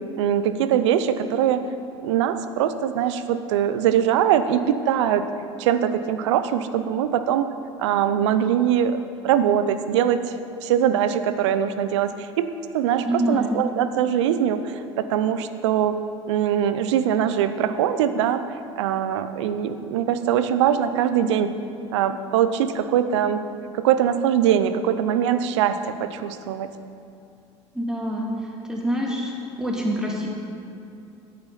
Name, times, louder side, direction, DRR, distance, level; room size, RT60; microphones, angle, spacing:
voice 1, 0.2-1.7 2.0-5.2 5.6-7.5 7.8-10.2 10.6-16.0 16.3-18.4 18.8-21.5 21.9-23.4 23.7-26.7, right 9 dB, 70° right, 11 dB, 0.6 m, -22 dB
voice 2, 13.0-13.6 27.7-28.3 28.7-29.3 29.6-30.3, equal, 5° right, -2 dB, 2.2 m, -25 dB
9.2 x 8.8 x 5.7 m, 2.6 s
hypercardioid pair, 75°, 15 cm